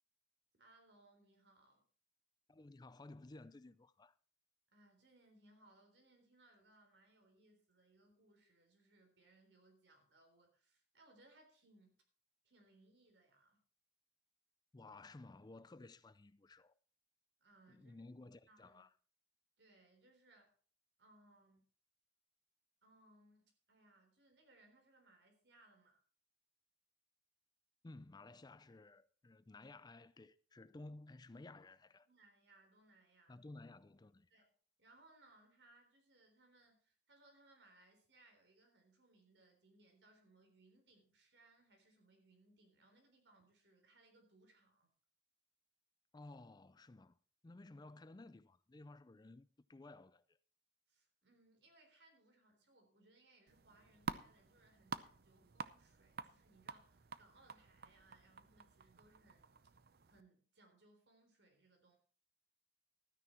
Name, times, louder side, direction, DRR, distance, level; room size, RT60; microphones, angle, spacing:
voice 1, 0.6-1.8 4.7-12.0 12.4-13.6 17.4-17.9 18.5-18.8 19.6-20.5 21.0-21.6 22.8-26.0 31.5-31.6 32.1-33.5 34.3-44.9 50.9-59.5 60.1-62.0, right 2 dB, 85° right, 3.8 m, -68 dB
voice 2, 2.5-4.1 14.7-16.7 17.7-18.9 27.8-32.1 33.3-34.3 46.1-47.1 47.4-50.2, left 2 dB, 25° left, 0.5 m, -56 dB
sound 1, 53.5-60.2, right 5 dB, 60° right, 0.7 m, -50 dB
13.0 x 9.7 x 4.4 m
head